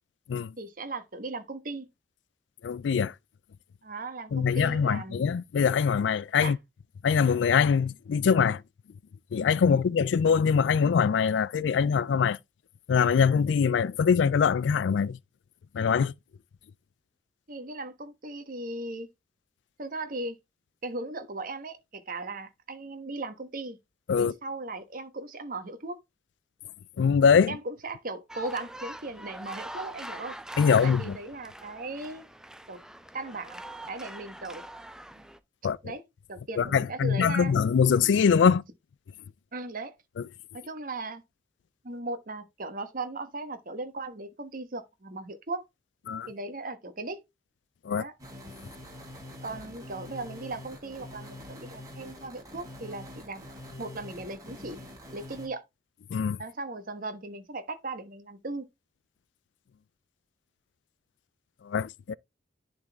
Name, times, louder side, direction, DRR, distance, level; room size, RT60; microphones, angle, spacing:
voice 1, 0.6-1.8 3.8-5.3 6.4-6.5 9.7-9.8 17.5-19.1 19.8-20.4 20.8-23.8 24.2-26.0 27.5-30.4 30.6-32.3 32.7-32.8 33.1-34.7 35.1-35.3 35.8-36.0 36.3-37.6 39.5-40.0 40.5-41.2 41.8-45.6 46.3-47.2 47.9-48.1 49.4-53.5 53.8-54.8 55.1-55.6 56.4-58.6, right 2 dB, 50° right, 1.2 m, -37 dB
voice 2, 2.6-3.1 4.3-6.6 7.0-8.6 9.3-12.4 12.9-15.2 15.7-16.1 24.1-24.3 27.0-27.5 30.6-31.2 35.6-35.8 36.6-38.6 46.1-46.3 47.9-48.0 56.1-56.4 61.7-62.1, left 6 dB, 80° left, 0.4 m, -23 dB
sound 1, 28.3-35.4, right 1 dB, 5° right, 0.5 m, -43 dB
sound 2, 48.2-55.5, left 1 dB, 20° right, 4.2 m, -45 dB
10.5 x 4.0 x 3.4 m
head